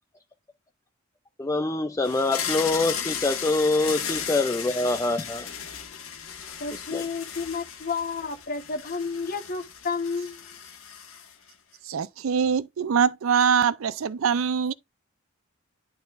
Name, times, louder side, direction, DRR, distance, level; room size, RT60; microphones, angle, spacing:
voice 1, 1.4-5.5 6.7-7.1, left 2 dB, 15° left, 0.4 m, -25 dB
sound 1, 2.0-11.5, left 7 dB, 85° left, 1.5 m, -35 dB
voice 2, 6.6-10.4, left 4 dB, 45° left, 1.1 m, -31 dB
voice 3, 11.9-14.7, right 7 dB, 75° right, 0.5 m, -23 dB
11.5 x 4.1 x 2.5 m
head